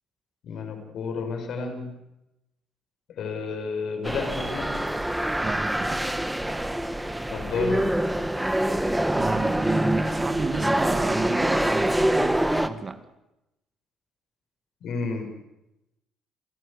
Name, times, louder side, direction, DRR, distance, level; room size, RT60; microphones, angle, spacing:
voice 1, 0.4-2.0 3.1-4.8 7.3-7.9 14.8-15.3, left 4 dB, 70° left, 4 dB, 5.7 m, -31 dB
sound 1, 4.0-12.7, right 1 dB, 5° right, 1.5 m, -25 dB
voice 2, 5.4-6.0 9.1-13.0, right 3 dB, 30° right, 9 dB, 2.0 m, -31 dB
28.0 x 14.0 x 8.4 m, 0.90 s
supercardioid pair, 75°, 0 cm